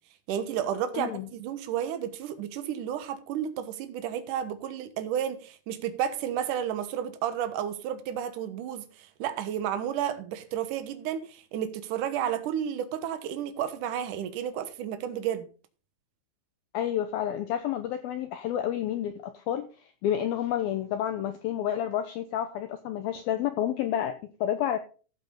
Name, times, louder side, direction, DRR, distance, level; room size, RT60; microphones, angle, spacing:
voice 1, 0.3-15.5, right 9 dB, 80° right, 1.9 m, -32 dB
voice 2, 0.9-1.3 16.7-19.7 20.0-24.8, left 10 dB, 90° left, 2.1 m, -30 dB
14.5 x 7.9 x 3.8 m
omnidirectional pair, 5.5 m